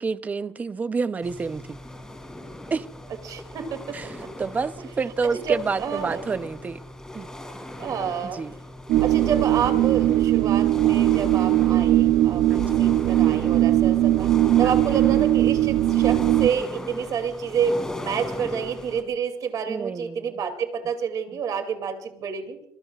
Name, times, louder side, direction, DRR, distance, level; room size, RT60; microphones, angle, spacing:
voice 1, 0.0-1.8 2.7-2.9 3.9-6.8 7.1-7.3 8.2-8.5 12.5-12.8 14.6-14.7 19.7-20.3, right 4 dB, 20° right, 0.6 m, -29 dB
sound 1, 1.2-19.0, left 1 dB, 5° left, 3.2 m, -38 dB
voice 2, 3.2-4.3 5.5-6.2 7.8-8.4 9.0-14.3 14.6-22.6, right 7 dB, 45° right, 2.6 m, -29 dB
sound 2, 8.9-16.5, right 14 dB, 65° right, 0.8 m, -20 dB
25.5 x 23.0 x 2.4 m
cardioid pair, 170°, 9 cm